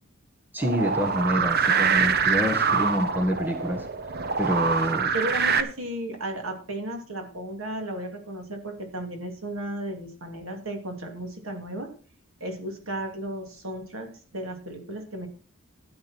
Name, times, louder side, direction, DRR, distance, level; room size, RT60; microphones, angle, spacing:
voice 1, 0.5-3.8 4.4-5.1, equal, 10° right, 4 dB, 1.4 m, -27 dB
sound 1, 0.6-5.6, right 5 dB, 50° right, 0.9 m, -24 dB
voice 2, 5.1-11.9 12.4-15.3, right 1 dB, 75° right, 4 dB, 2.8 m, -34 dB
13.0 x 8.7 x 4.4 m, 0.38 s
head